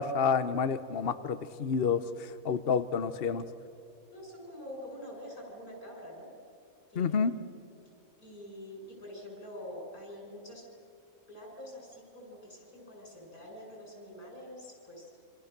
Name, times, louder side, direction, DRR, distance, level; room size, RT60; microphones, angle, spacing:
voice 1, 0.0-3.4 7.0-7.3, left 6 dB, 50° left, 11 dB, 0.9 m, -29 dB
voice 2, 4.1-6.3 6.9-7.6 8.2-10.7 11.3-15.1, left 1 dB, 85° left, 0 dB, 7.3 m, -46 dB
27.5 x 27.0 x 6.7 m, 2.4 s
omnidirectional pair, 1.5 m